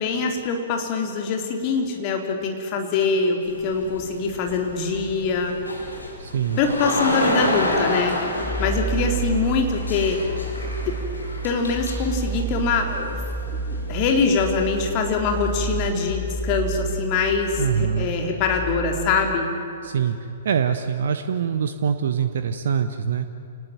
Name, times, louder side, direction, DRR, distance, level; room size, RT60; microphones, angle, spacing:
voice 1, 0.0-5.5 6.6-8.2 8.6-10.2 10.8-11.0 11.4-13.2 13.5-19.5, left 4 dB, 35° left, 3 dB, 4.1 m, -24 dB
sound 1, 3.4-15.9, left 1 dB, 75° left, 5.3 m, -30 dB
sound 2, 4.0-6.0 6.5-6.6 7.2-19.4, right 4 dB, ahead, 1.9 m, -31 dB
voice 2, 6.2-6.6 17.6-18.1 19.8-20.2 20.4-23.3, right 7 dB, 55° right, 9 dB, 1.1 m, -24 dB
28.0 x 19.0 x 9.1 m, 2.8 s
figure-of-eight pair, 115°, 0 cm